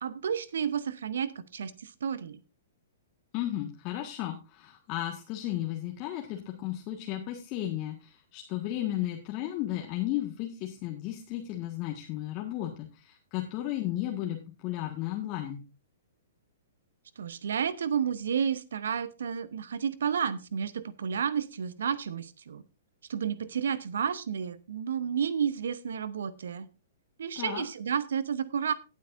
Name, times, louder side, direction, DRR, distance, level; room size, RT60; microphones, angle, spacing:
voice 1, 0.0-2.4 17.2-22.6 23.1-26.7 27.2-28.7, right 7 dB, 65° right, 17 dB, 0.9 m, -31 dB
voice 2, 3.3-15.6 27.3-27.6, left 13 dB, 35° left, 1 dB, 1.6 m, -34 dB
17.5 x 8.4 x 2.6 m, 0.28 s
figure-of-eight pair, 110°, 0 cm